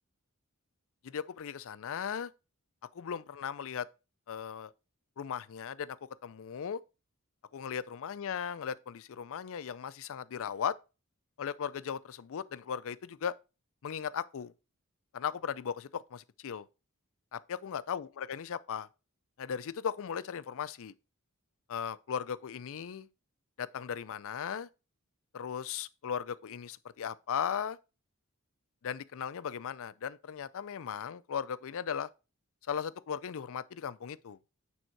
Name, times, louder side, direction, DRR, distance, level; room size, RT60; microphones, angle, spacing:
voice 1, 1.0-2.3 2.9-3.9 4.3-4.7 5.2-6.0 6.2-6.8 7.5-10.7 11.4-13.3 13.8-14.5 15.1-16.7 17.3-18.9 19.4-20.9 21.7-23.1 23.6-24.7 25.3-27.8 28.8-32.1 32.7-34.4, left 7 dB, 65° left, 0.4 m, -37 dB
9.1 x 3.6 x 4.5 m
head